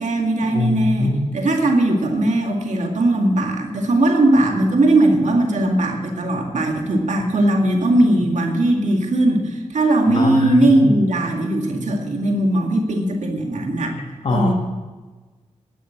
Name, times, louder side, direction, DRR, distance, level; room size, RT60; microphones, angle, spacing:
voice 1, 0.0-14.0 14.3-14.5, right 1 dB, 75° right, 2 dB, 2.1 m, -19 dB
voice 2, 0.5-1.2 10.1-10.9 14.2-14.5, left 2 dB, 55° left, 0 dB, 1.6 m, -22 dB
11.0 x 9.3 x 8.0 m, 1.3 s
cardioid pair, 70°, 12 cm